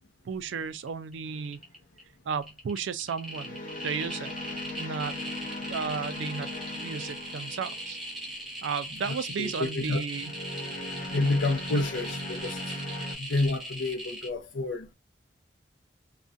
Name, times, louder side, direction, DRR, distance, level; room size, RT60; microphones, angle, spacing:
voice 1, 0.3-1.6 2.3-4.3 4.8-5.2 5.7-6.5 6.8-8.0 8.6-10.3 11.1-11.4, right 6 dB, 80° right, 0.4 m, -34 dB
sound 1, 0.9-1.1 1.4-2.0 2.4-14.3, right 1 dB, ahead, 0.6 m, -39 dB
sound 2, 1.3-1.6 3.2-8.3 10.1-13.2, left 1 dB, 45° left, 0.9 m, -39 dB
voice 2, 9.0-10.0 11.0-12.6 13.2-14.9, left 2 dB, 85° left, 0.6 m, -29 dB
2.4 x 2.1 x 2.5 m
head